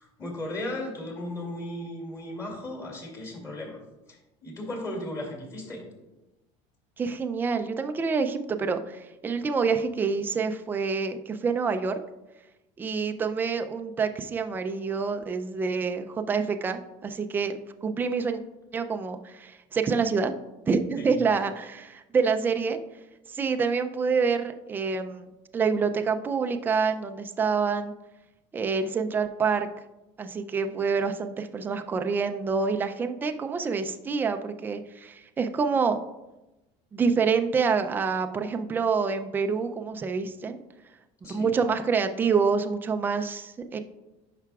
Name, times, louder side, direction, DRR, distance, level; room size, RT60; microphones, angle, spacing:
voice 1, 0.0-3.8 4.1-5.8 21.0-21.1 41.2-41.5, left 1 dB, 20° left, -1 dB, 2.3 m, -36 dB
voice 2, 7.0-12.0 12.8-18.4 18.7-20.3 20.7-22.8 23.3-25.3 25.5-27.9 28.5-29.7 30.2-36.0 36.9-40.6 41.3-43.8, right 5 dB, 15° right, 7 dB, 0.3 m, -27 dB
10.5 x 5.7 x 2.3 m, 1.0 s
cardioid pair, 155°, 15 cm